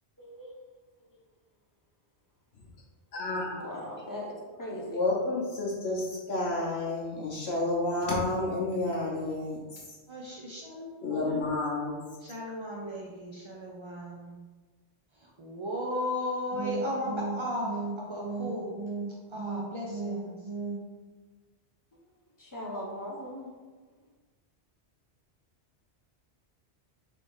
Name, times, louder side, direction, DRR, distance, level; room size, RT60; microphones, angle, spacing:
voice 1, 0.2-0.5 1.0-1.1 3.6-5.0 22.4-23.5, equal, 20° left, -3 dB, 0.7 m, -39 dB
voice 2, 3.1-3.7 4.9-9.6 11.0-12.0, left 2 dB, 70° left, -4 dB, 0.9 m, -30 dB
voice 3, 10.1-11.4 12.2-14.4 15.2-20.9, right 1 dB, 50° right, -3 dB, 0.3 m, -34 dB
3.4 x 2.8 x 4.6 m, 1.4 s
omnidirectional pair, 1.1 m